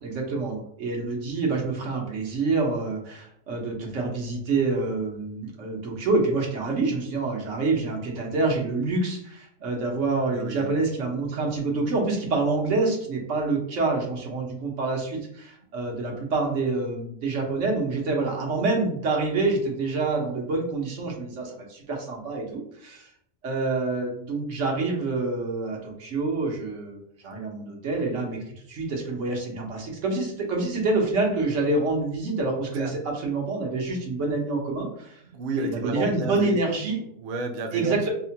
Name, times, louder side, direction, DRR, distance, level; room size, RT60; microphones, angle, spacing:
voice 1, 0.0-23.1 23.4-28.4 28.7-35.2 35.6-37.0 37.7-38.1, right 3 dB, 90° right, 0 dB, 1.3 m, -27 dB
voice 2, 10.3-10.7 32.7-33.0 35.2-36.6 37.2-38.1, right 3 dB, 60° right, 3 dB, 0.6 m, -31 dB
4.7 x 2.1 x 2.8 m, 0.68 s
omnidirectional pair, 1.2 m